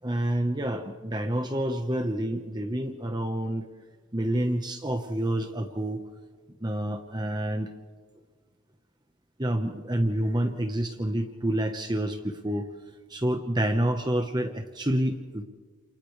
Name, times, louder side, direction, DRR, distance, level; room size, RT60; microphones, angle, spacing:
voice 1, 0.0-3.6 4.1-6.0 6.6-7.7 9.4-12.7 13.1-15.4, right 1 dB, 20° right, 4 dB, 1.1 m, -28 dB
28.5 x 28.5 x 3.3 m, 1.5 s
head